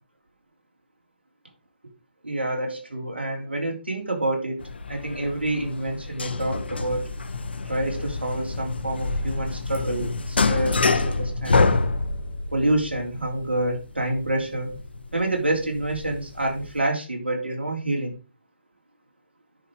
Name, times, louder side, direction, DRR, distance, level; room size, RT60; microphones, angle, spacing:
voice 1, 2.2-4.6 4.9-7.1 7.7-11.9 12.5-14.7 15.1-18.2, right 1 dB, 85° right, 1 dB, 3.7 m, -27 dB
sound 1, 4.6-16.8, left 3 dB, 70° left, 1.5 m, -27 dB
10.0 x 5.7 x 4.8 m, 0.31 s
figure-of-eight pair, 145°, 6 cm